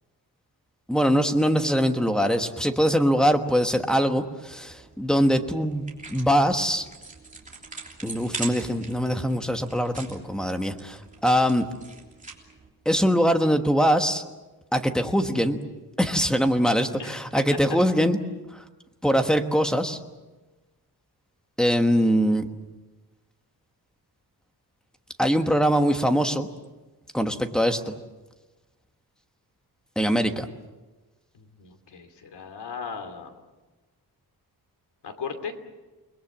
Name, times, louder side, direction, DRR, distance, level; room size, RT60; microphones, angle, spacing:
voice 1, 0.9-6.9 8.0-11.7 12.8-14.2 14.7-15.6 16.0-18.2 18.5-18.6 19.0-20.0 21.6-22.5 25.2-26.5 27.1-28.0 30.0-30.5, equal, ahead, 6 dB, 1.3 m, -22 dB
sound 1, 4.5-12.7, right 4 dB, 20° right, 3.2 m, -42 dB
voice 2, 31.3-33.3 35.0-35.5, left 6 dB, 80° left, 7 dB, 2.8 m, -37 dB
29.5 x 21.0 x 7.4 m, 1.2 s
wide cardioid pair, 180°, 40 cm